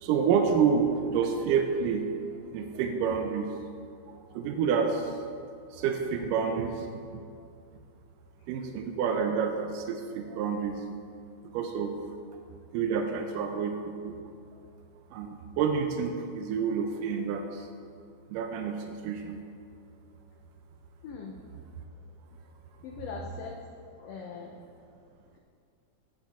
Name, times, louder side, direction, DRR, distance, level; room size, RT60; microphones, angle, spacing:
voice 1, 0.0-2.1 2.5-3.5 4.3-5.2 5.7-6.9 8.5-10.8 11.5-12.0 12.7-14.2 15.1-17.7 18.3-19.4, right 6 dB, 90° right, 4 dB, 2.3 m, -28 dB
voice 2, 21.0-21.4 22.8-23.6 24.0-24.6, left 5 dB, 90° left, 2 dB, 1.4 m, -40 dB
16.0 x 5.8 x 4.2 m, 2.3 s
omnidirectional pair, 3.7 m